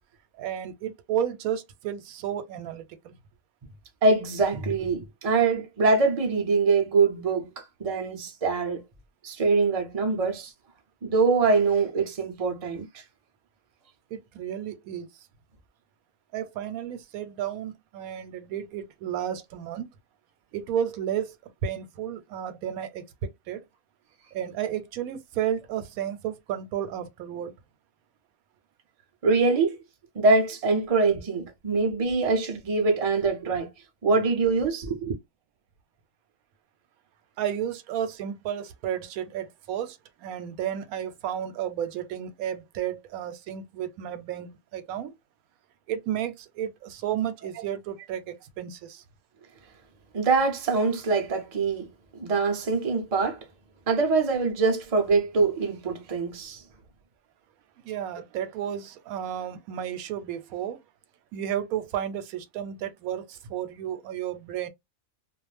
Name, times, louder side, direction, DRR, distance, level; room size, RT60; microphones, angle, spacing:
voice 1, 0.4-3.1 14.1-15.1 16.3-19.9 20.5-21.3 21.6-23.6 24.3-27.5 37.4-45.1 45.9-49.0 57.8-60.8 61.3-64.7, right 10 dB, 90° right, 1.0 m, -32 dB
voice 2, 4.0-8.9 9.2-10.5 11.0-13.0 29.2-29.8 30.1-33.7 34.0-35.1 50.1-53.5 53.9-56.6, right 4 dB, 40° right, 0.5 m, -24 dB
2.4 x 2.0 x 3.2 m
omnidirectional pair, 1.4 m